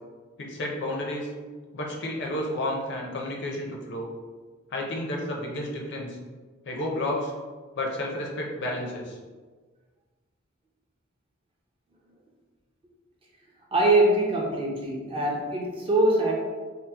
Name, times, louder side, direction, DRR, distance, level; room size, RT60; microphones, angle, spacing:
voice 1, 0.4-1.3 1.7-4.1 4.7-6.2 6.7-7.3 7.8-9.2, left 1 dB, 55° left, -1 dB, 0.6 m, -31 dB
voice 2, 13.7-16.3, right 2 dB, 25° right, -2 dB, 0.5 m, -23 dB
2.8 x 2.0 x 3.3 m, 1.4 s
head